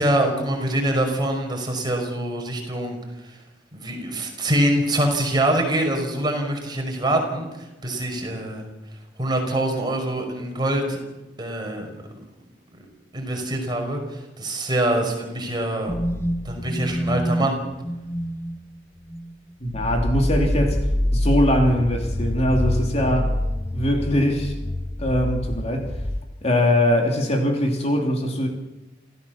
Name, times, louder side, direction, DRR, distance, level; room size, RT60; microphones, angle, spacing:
voice 1, 0.0-3.0 3.3-3.4 3.7-7.5 7.8-8.6 9.2-11.0 11.4-11.9 12.7-12.9 13.1-15.9 16.4-17.6, right 1 dB, 25° right, 2 dB, 5.6 m, -24 dB
sound 1, 15.9-18.6 19.0-19.3 19.7-26.2, left 1 dB, 15° left, 0.9 m, -26 dB
voice 2, 19.6-20.8 21.1-23.4 23.7-24.6 25.0-26.0 26.4-28.5, left 1 dB, 35° left, 2 dB, 3.0 m, -21 dB
28.0 x 15.5 x 7.3 m, 1.1 s
head